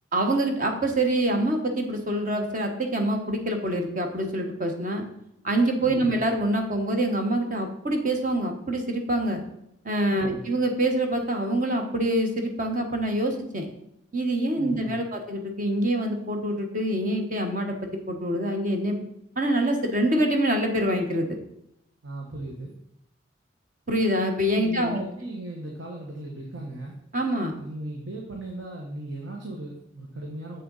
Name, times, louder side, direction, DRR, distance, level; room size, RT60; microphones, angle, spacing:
voice 1, 0.1-5.0 5.4-9.4 9.8-13.7 14.1-17.7 18.1-19.0 19.4-21.4 23.9-25.0 27.1-27.6, right 1 dB, 40° right, 4 dB, 1.3 m, -25 dB
voice 2, 5.8-6.1 10.1-10.5 14.6-15.0 22.0-22.7 24.5-27.0 27.5-30.6, right 1 dB, 75° right, -1 dB, 1.4 m, -37 dB
7.7 x 6.6 x 4.1 m, 0.80 s
head